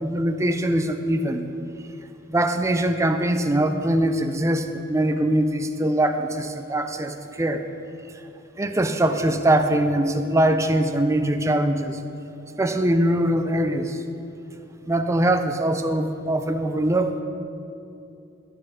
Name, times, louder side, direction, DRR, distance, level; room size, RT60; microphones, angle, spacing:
voice 1, 0.0-1.4 2.3-7.7 8.6-12.0 12.6-14.0 14.9-17.2, right 1 dB, 15° right, 7 dB, 0.4 m, -22 dB
11.5 x 6.4 x 5.1 m, 2.7 s
head